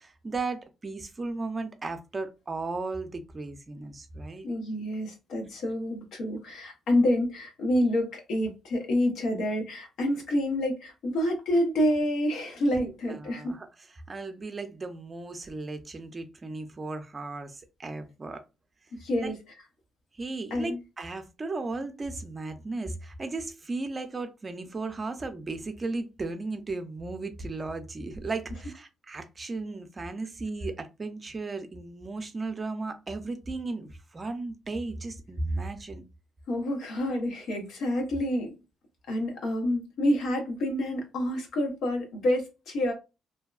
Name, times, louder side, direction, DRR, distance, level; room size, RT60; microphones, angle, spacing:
voice 1, 0.0-4.5 12.7-13.7 14.1-18.4 19.2-19.3 20.2-36.0, right 3 dB, 30° right, 0.5 m, -35 dB
voice 2, 4.4-13.5 19.0-19.4 20.5-20.8 36.5-38.6 39.1-42.9, left 1 dB, 80° left, 0.9 m, -28 dB
2.7 x 2.2 x 2.4 m
cardioid pair, 90°, 0 cm